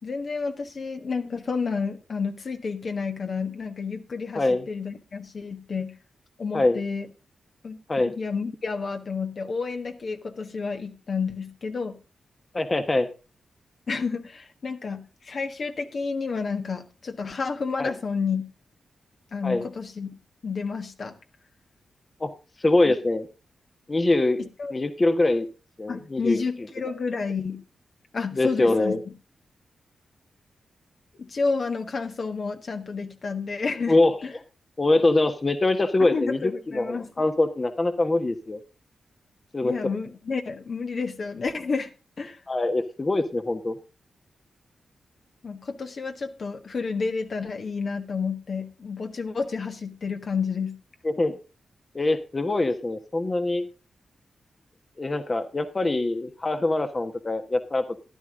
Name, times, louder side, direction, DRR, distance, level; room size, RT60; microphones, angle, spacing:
voice 1, 0.0-5.9 6.4-7.1 7.6-7.8 8.1-12.0 13.9-18.4 19.3-20.1 20.4-21.1 22.8-23.0 24.4-24.7 25.9-27.6 28.1-29.0 31.2-34.3 36.1-37.1 39.6-41.9 42.2-42.4 45.4-50.8, left 5 dB, 60° left, 5 dB, 1.5 m, -30 dB
voice 2, 4.3-4.6 6.5-6.8 7.9-8.1 12.5-13.1 17.8-17.9 19.4-19.6 22.2-22.3 22.6-23.3 23.9-24.4 24.7-25.5 25.8-26.4 28.4-29.0 33.9-34.1 34.8-38.6 39.5-39.7 42.5-43.7 51.0-51.3 51.9-53.7 55.0-57.8, left 2 dB, 35° left, 8 dB, 1.2 m, -23 dB
13.5 x 11.0 x 3.7 m, 0.31 s
supercardioid pair, 45°, 0 cm